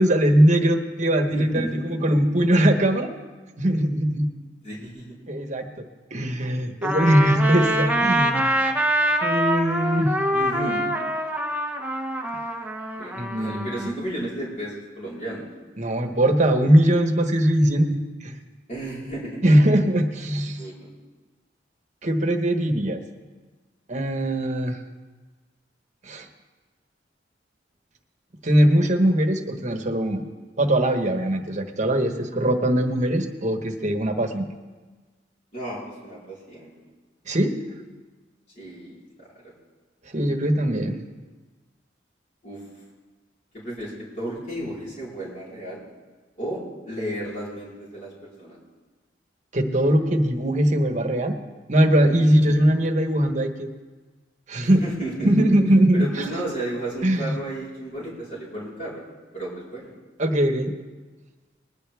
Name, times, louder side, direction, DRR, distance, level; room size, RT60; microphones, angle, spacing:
voice 1, 0.0-3.1 3.6-4.3 5.3-5.7 6.1-8.5 9.2-10.1 13.1-13.9 15.8-18.3 19.4-20.6 22.0-23.0 23.9-24.8 26.0-26.3 28.4-30.2 30.6-34.5 37.3-37.5 40.1-41.0 49.5-51.4 51.7-53.7 54.5-54.8 55.2-56.2 57.0-57.4 60.2-60.7, right 1 dB, 40° right, 5 dB, 1.3 m, -21 dB
voice 2, 1.3-1.9 2.2-2.3 4.6-5.2 10.3-10.9 12.9-15.5 18.7-19.4 20.6-20.9 35.5-36.7 38.6-39.5 42.4-42.6 43.5-45.8 46.4-48.6 52.2-52.6 54.6-55.5 55.9-59.0 59.3-59.9, right 1 dB, 45° left, -7 dB, 4.2 m, -33 dB
Trumpet, 6.8-13.9, equal, 10° right, 1.0 m, -25 dB
20.5 x 10.5 x 3.4 m, 1.3 s
head